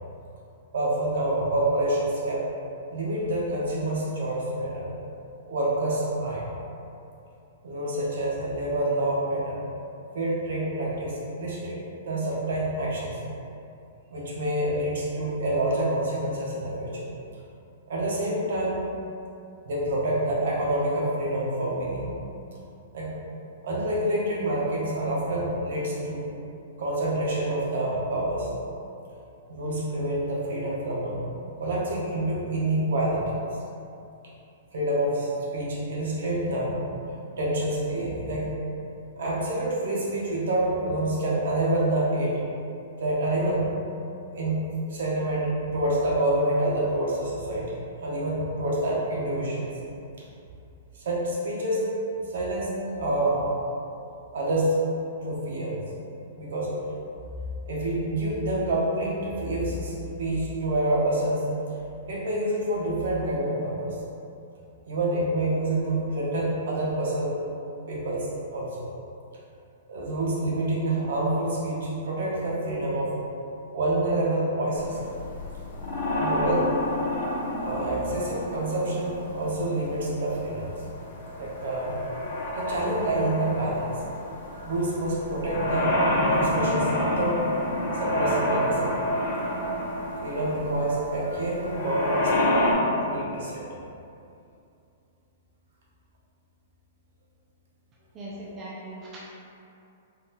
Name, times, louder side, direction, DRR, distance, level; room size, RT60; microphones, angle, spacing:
voice 1, 0.7-2.5 2.9-4.8 5.4-6.5 7.6-9.6 10.1-11.8 12.0-13.2 14.1-17.1 17.9-18.8 19.6-22.1 22.9-23.2 23.6-26.3 26.8-28.5 29.5-31.2 31.6-33.2 34.7-36.7 37.4-38.5 39.2-42.4 43.0-43.6 44.3-44.6 44.9-49.7 50.9-51.8 52.1-53.4 54.3-54.8 55.2-55.8 56.4-56.7 57.7-61.4 62.0-64.0 64.8-67.3 67.9-68.9 69.9-73.2 73.7-75.0 76.2-76.6 77.6-80.8 81.4-82.0 82.5-84.0 84.6-85.9 86.3-87.4 88.0-88.9 90.2-93.6, right 1 dB, 65° right, -5 dB, 0.8 m, -27 dB
sound 1, 74.8-92.7, left 1 dB, 85° left, 0.9 m, -29 dB
voice 2, 98.1-99.3, right 1 dB, 15° right, -7 dB, 0.3 m, -39 dB
3.8 x 2.4 x 2.7 m, 2.6 s
hypercardioid pair, 175°, 0 cm